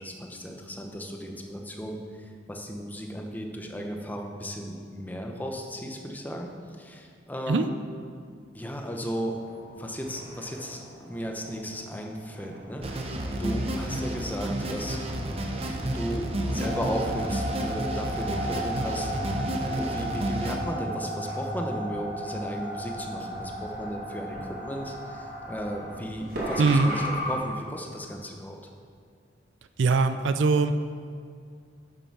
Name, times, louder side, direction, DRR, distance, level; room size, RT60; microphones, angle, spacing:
voice 1, 0.0-6.5 6.8-7.7 8.5-9.4 9.8-13.1 13.4-15.0 15.9-19.5 19.7-24.4 24.6-28.6, equal, 10° left, 2 dB, 0.8 m, -35 dB
sound 1, 9.4-27.4, equal, 50° right, 2.2 m, -36 dB
sound 2, 12.8-20.6, right 1 dB, 30° right, 0.8 m, -31 dB
voice 2, 26.6-26.9 29.8-30.7, right 4 dB, 75° right, 10 dB, 0.4 m, -21 dB
9.3 x 6.7 x 6.0 m, 2.2 s
head